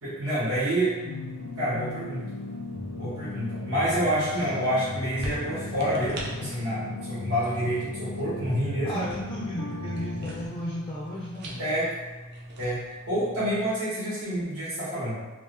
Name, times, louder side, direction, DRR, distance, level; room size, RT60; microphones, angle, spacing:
voice 1, 0.0-0.9 1.6-2.3 2.9-9.0 11.6-11.9 12.6-12.8 13.1-15.2, right 1 dB, 75° right, -10 dB, 1.4 m, -28 dB
sound 1, 0.7-13.7, right 1 dB, 50° right, 0.6 m, -43 dB
sound 2, 1.0-10.5, left 3 dB, 70° left, 0.5 m, -37 dB
voice 2, 8.8-11.7, equal, 20° left, -6 dB, 0.5 m, -34 dB
3.2 x 2.6 x 3.2 m, 1.3 s
head